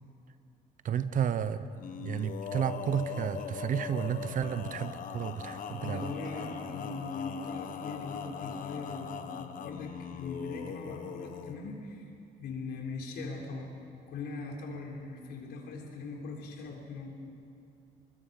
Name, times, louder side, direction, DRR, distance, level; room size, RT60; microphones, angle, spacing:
voice 1, 0.8-1.7 2.0-6.1, right 8 dB, 50° right, 13 dB, 0.9 m, -32 dB
Male singing, 1.8-11.6, left 7 dB, 55° left, 1.3 m, -40 dB
voice 2, 5.8-12.1 12.4-13.7 14.1-17.1, left 3 dB, 70° left, 0 dB, 3.9 m, -40 dB
24.0 x 21.5 x 5.4 m, 2.5 s
cardioid pair, 110°, 17 cm